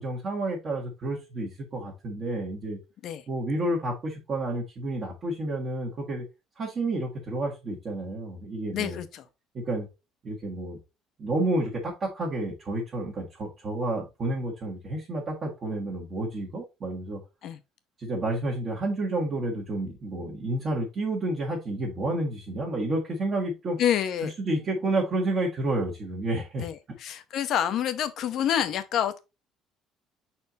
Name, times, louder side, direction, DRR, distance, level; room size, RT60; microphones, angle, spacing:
voice 1, 0.0-2.8 3.3-6.2 6.6-9.0 9.5-9.9 10.2-10.8 11.2-17.2 18.0-23.8 24.4-26.6, right 2 dB, 30° right, 1.5 m, -30 dB
voice 2, 8.7-9.2 17.4-17.6 23.8-24.3 26.6-29.2, left 10 dB, 50° left, 0.8 m, -28 dB
5.5 x 4.4 x 3.9 m
cardioid pair, 165°, 0 cm